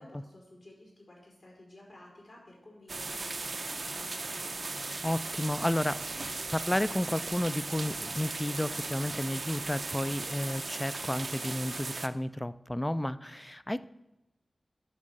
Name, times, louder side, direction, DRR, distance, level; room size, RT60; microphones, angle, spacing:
voice 1, 0.0-4.8, left 1 dB, 65° left, -3 dB, 3.8 m, -53 dB
sound 1, 2.9-12.1, right 3 dB, 50° right, 0.5 m, -37 dB
voice 2, 5.0-13.9, left 1 dB, 15° left, 15 dB, 0.3 m, -32 dB
11.0 x 4.5 x 6.4 m, 0.95 s
wide cardioid pair, 80°, 0 cm